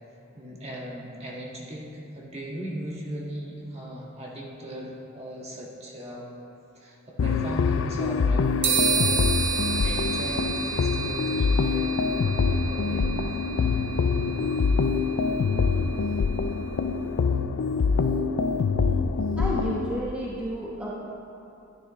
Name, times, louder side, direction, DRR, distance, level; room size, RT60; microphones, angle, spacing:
voice 1, 0.3-1.9 2.1-6.3 6.7-9.3 9.7-13.1, right 1 dB, 30° right, -4 dB, 1.6 m, -38 dB
sound 1, 7.2-20.0, left 5 dB, 70° left, 0.4 m, -25 dB
sound 2, 8.6-16.3, right 6 dB, 60° right, 1.4 m, -31 dB
voice 2, 19.4-20.9, equal, 5° right, -6 dB, 1.0 m, -31 dB
13.5 x 9.3 x 3.1 m, 2.7 s
head